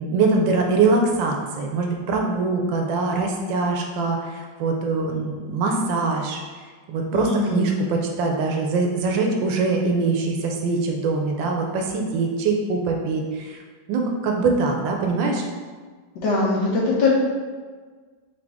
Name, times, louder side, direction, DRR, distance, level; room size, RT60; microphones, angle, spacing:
voice 1, 0.0-13.6 13.9-15.5, right 3 dB, 75° right, 2 dB, 1.2 m, -23 dB
voice 2, 7.1-7.6 16.2-17.1, left 3 dB, 65° left, -3 dB, 1.3 m, -21 dB
3.9 x 3.1 x 3.4 m, 1.5 s
omnidirectional pair, 2.2 m